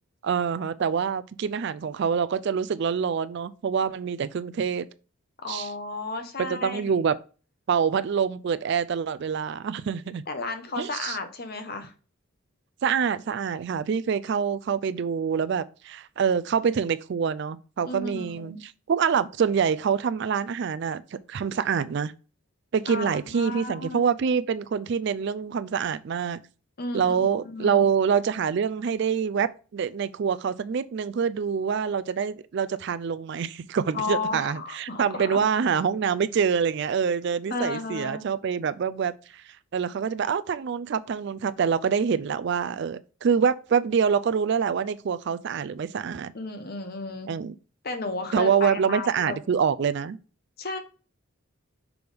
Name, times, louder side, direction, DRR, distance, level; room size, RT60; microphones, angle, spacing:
voice 1, 0.2-4.9 5.5-5.7 6.4-7.2 7.7-10.2 10.8-11.2 12.8-21.0 21.3-22.1 22.7-26.4 26.9-39.4 39.7-46.3 47.3-47.5 48.3-50.2, right 6 dB, 50° right, 0.3 m, -26 dB
voice 2, 5.4-6.9 10.3-11.9 17.8-18.6 22.9-24.0 26.8-27.8 33.9-35.4 37.5-38.2 46.3-47.3 47.8-49.4 50.6-50.8, left 3 dB, 45° left, 1.0 m, -33 dB
6.1 x 3.4 x 5.1 m
head